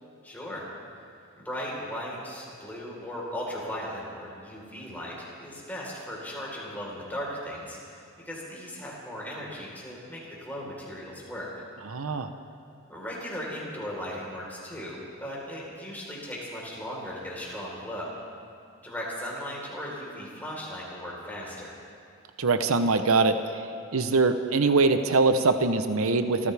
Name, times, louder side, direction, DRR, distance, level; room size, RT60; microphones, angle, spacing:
voice 1, 0.2-0.7 1.4-11.5 12.9-18.1 18.8-21.7, equal, 10° left, -5 dB, 4.1 m, -37 dB
voice 2, 11.9-12.3 22.4-23.3 23.9-26.5, right 3 dB, 70° right, 8 dB, 0.8 m, -23 dB
28.5 x 15.0 x 3.5 m, 2.5 s
head